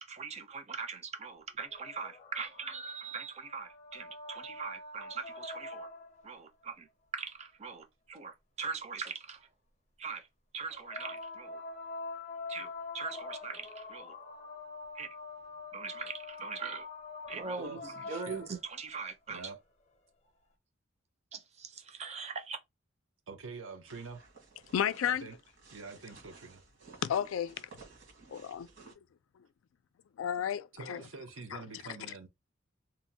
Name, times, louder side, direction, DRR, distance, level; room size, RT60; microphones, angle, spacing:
voice 1, 0.0-5.9 6.2-6.9 7.1-9.5 10.0-10.3 10.5-11.6 12.5-14.1 14.9-15.1 15.7-16.9 17.3-19.5 21.3-22.6, right 5 dB, 35° right, 0.5 m, -41 dB
sound 1, 1.6-6.4 10.7-18.9 20.3-20.4, left 3 dB, 35° left, 0.6 m, -45 dB
voice 2, 17.6-18.4 19.3-19.6 23.3-24.2 25.1-25.4 25.7-26.6 30.7-32.3, right 4 dB, 85° right, 0.7 m, -46 dB
sound 2, 23.9-28.9, right 4 dB, 70° right, 1.3 m, -56 dB
voice 3, 24.7-25.3 27.0-27.7 28.3-28.7 29.4-29.5 30.2-31.0 31.5-32.0, left 9 dB, 85° left, 0.3 m, -33 dB
2.9 x 2.1 x 2.7 m
head